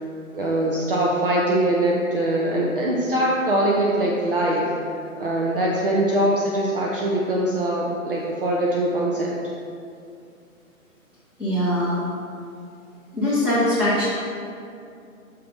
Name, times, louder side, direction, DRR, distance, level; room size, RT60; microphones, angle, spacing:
voice 1, 0.3-4.7 5.2-9.3, right 1 dB, 40° right, -4 dB, 0.7 m, -22 dB
voice 2, 11.4-12.0 13.1-14.1, left 1 dB, 5° right, -12 dB, 1.3 m, -21 dB
6.6 x 3.3 x 5.3 m, 2.5 s
figure-of-eight pair, 140°, 43 cm